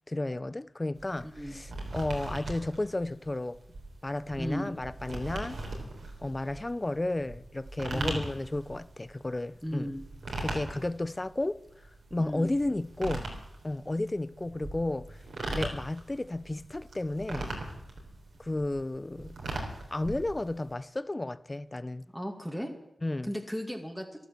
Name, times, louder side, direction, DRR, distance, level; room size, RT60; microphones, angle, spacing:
voice 1, 0.1-3.6 4.0-5.6 6.2-9.9 10.4-11.6 12.1-13.3 13.6-15.2 15.4-17.5 18.4-19.3 19.9-22.1 23.0-23.3, left 2 dB, 30° left, 0.6 m, -33 dB
sound 1, 0.9-20.7, right 2 dB, 85° right, 3.8 m, -40 dB
voice 2, 4.4-4.7 7.9-8.2 9.6-10.0 12.2-12.5 22.1-22.7 23.2-24.0, equal, ahead, 2.2 m, -35 dB
13.5 x 12.0 x 7.6 m
cardioid pair, 55°, 0 cm